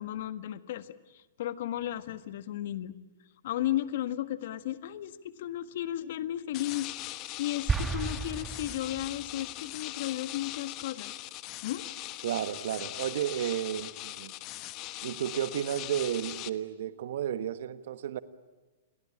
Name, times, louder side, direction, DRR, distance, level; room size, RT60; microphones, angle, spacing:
voice 1, 0.0-3.0 3.4-6.9 7.4-11.1 11.6-11.9, left 13 dB, 60° left, 1.6 m, -34 dB
sound 1, 6.5-16.5, left 17 dB, 40° left, 1.3 m, -41 dB
sound 2, 7.7-9.3, right 5 dB, 15° right, 1.6 m, -33 dB
voice 2, 12.2-14.3 15.0-18.2, right 10 dB, 65° right, 1.5 m, -32 dB
29.5 x 23.0 x 8.8 m
hypercardioid pair, 125°, 0 cm